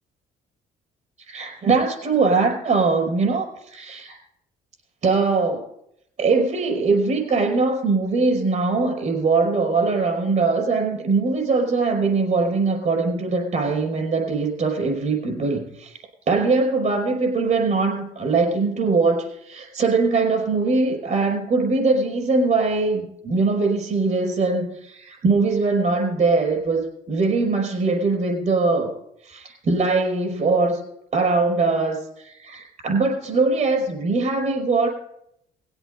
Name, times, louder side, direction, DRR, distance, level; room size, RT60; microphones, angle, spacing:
voice 1, 1.3-4.2 5.0-5.7 6.2-15.9 16.3-28.9 29.2-30.8 31.1-34.9, right 3 dB, 45° right, 2 dB, 5.3 m, -21 dB
19.0 x 8.1 x 5.2 m, 0.76 s
cardioid pair, 110°, 17 cm